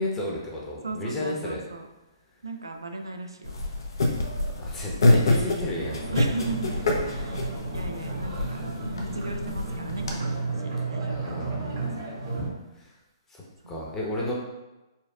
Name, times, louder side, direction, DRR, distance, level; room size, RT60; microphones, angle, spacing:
voice 1, 0.0-1.6 4.5-6.2 7.1-7.3 11.1-11.9 13.3-14.3, left 1 dB, 15° left, -4 dB, 0.8 m, -33 dB
voice 2, 0.8-1.9 2.4-3.6 6.1-6.8 7.1-8.6 8.9-11.9 13.6-13.7, right 2 dB, 80° right, 5 dB, 0.4 m, -37 dB
sound 1, 3.4-10.1, left 2 dB, 65° left, 0.6 m, -27 dB
sound 2, 5.7-12.5, right 3 dB, 55° right, 1.4 m, -33 dB
4.3 x 2.3 x 2.4 m, 1.0 s
figure-of-eight pair, 125°, 2 cm